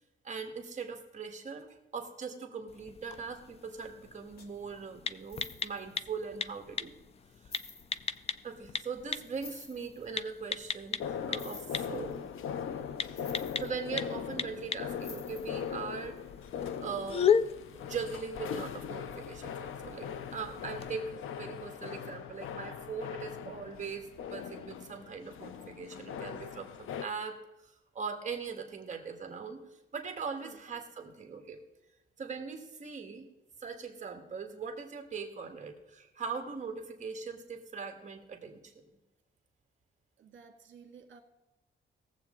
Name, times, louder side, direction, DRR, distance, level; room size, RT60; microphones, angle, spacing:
voice 1, 0.2-6.9 8.4-12.2 13.5-16.2 16.8-17.3 17.6-21.1 21.4-27.4 27.6-29.6 29.9-31.6 32.2-33.3 33.6-38.7, right 5 dB, 35° right, 4 dB, 1.6 m, -40 dB
sound 1, 2.7-20.9, left 7 dB, 30° left, 0.4 m, -37 dB
sound 2, 4.4-4.6 5.2-5.9 6.7-6.8 7.3-8.2 9.2-10.1 11.3-12.2 13.0-14.3 15.0-15.7 16.2-16.3, left 4 dB, 50° left, 1.4 m, -51 dB
sound 3, 11.0-27.1, left 8 dB, 85° left, 0.7 m, -40 dB
voice 2, 12.8-13.3 26.1-26.3 30.4-30.6 40.2-41.2, right 6 dB, 65° right, 4 dB, 1.9 m, -55 dB
20.0 x 7.6 x 3.7 m, 1.0 s
wide cardioid pair, 160°, 20 cm